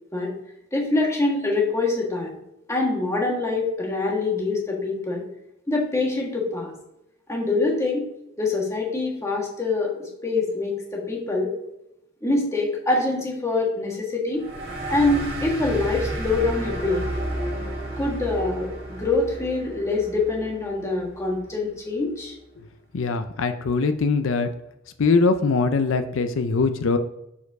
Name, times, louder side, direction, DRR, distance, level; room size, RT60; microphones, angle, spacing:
voice 1, 0.7-2.3 2.7-5.2 5.7-6.7 7.3-8.1 8.4-11.5 12.2-14.4 14.9-17.0 18.0-22.3, left 3 dB, 15° left, -1 dB, 1.6 m, -24 dB
sound 1, 14.4-21.5, right 1 dB, 55° right, 2.2 m, -32 dB
voice 2, 22.9-24.5 25.0-27.0, left 4 dB, 85° left, 9 dB, 0.5 m, -22 dB
7.1 x 4.6 x 4.7 m, 0.86 s
head